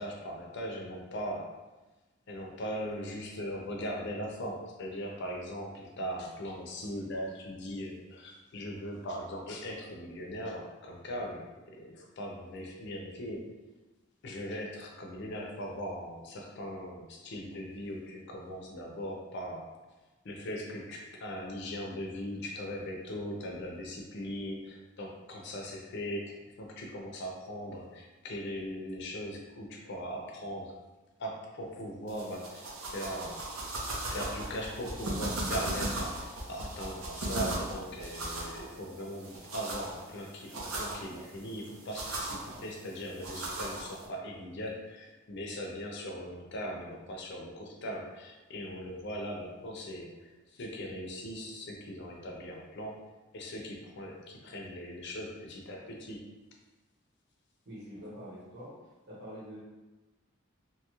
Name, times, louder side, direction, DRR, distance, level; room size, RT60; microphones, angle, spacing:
voice 1, 0.0-1.6 2.3-13.4 14.2-19.7 20.2-30.8 31.2-32.7 32.9-33.4 34.0-53.0 53.3-56.2, equal, 55° left, 0 dB, 0.5 m, -39 dB
sound 1, 32.1-44.1, right 1 dB, 85° right, 0.6 m, -38 dB
voice 2, 57.6-58.7 59.1-59.6, equal, 50° right, -8 dB, 0.9 m, -45 dB
2.9 x 2.3 x 3.0 m, 1.1 s
head